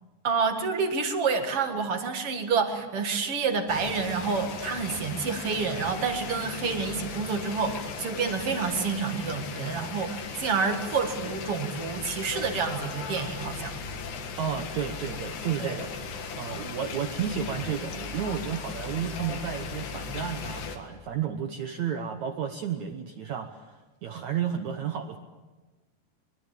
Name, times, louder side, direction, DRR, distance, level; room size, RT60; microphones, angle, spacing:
voice 1, 0.2-13.8 15.6-15.8, right 5 dB, 45° right, 5 dB, 2.0 m, -28 dB
sound 1, 3.7-20.8, left 5 dB, 75° left, 4.0 m, -37 dB
voice 2, 14.4-15.9 16.4-25.2, right 8 dB, 80° right, 6 dB, 1.6 m, -32 dB
24.0 x 23.0 x 7.4 m, 1.2 s
omnidirectional pair, 4.9 m